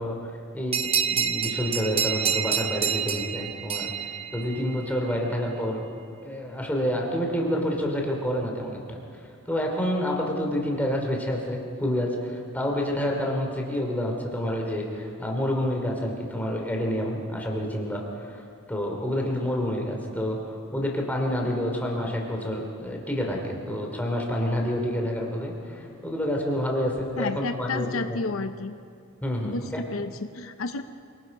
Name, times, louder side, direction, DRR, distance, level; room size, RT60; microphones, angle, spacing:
voice 1, 0.0-3.9 4.3-5.8 6.2-9.0 9.5-18.4 18.7-28.2 29.2-29.8, equal, 5° left, 0 dB, 2.8 m, -28 dB
sound 1, 0.7-5.0, right 7 dB, 25° right, 0.7 m, -28 dB
voice 2, 27.2-28.7 29.4-30.8, left 3 dB, 65° left, 9 dB, 0.7 m, -31 dB
27.0 x 19.0 x 5.3 m, 2.5 s
head